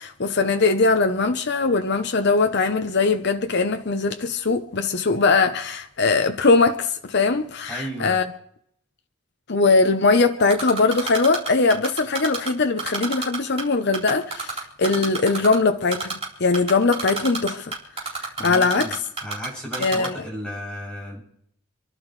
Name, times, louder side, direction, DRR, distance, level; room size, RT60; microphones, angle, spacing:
voice 1, 0.0-8.2 9.5-17.8 18.1-19.0 19.8-20.2, left 3 dB, 50° left, 0.8 m, -21 dB
voice 2, 7.7-8.2 18.4-18.9 19.2-21.2, equal, 5° left, 7.5 m, -34 dB
Typing, 10.5-12.5 12.8-13.6 13.9-15.5 15.9-16.3 16.5-19.5 19.7-20.1, right 4 dB, 30° right, 4.0 m, -28 dB
28.0 x 12.0 x 3.2 m
head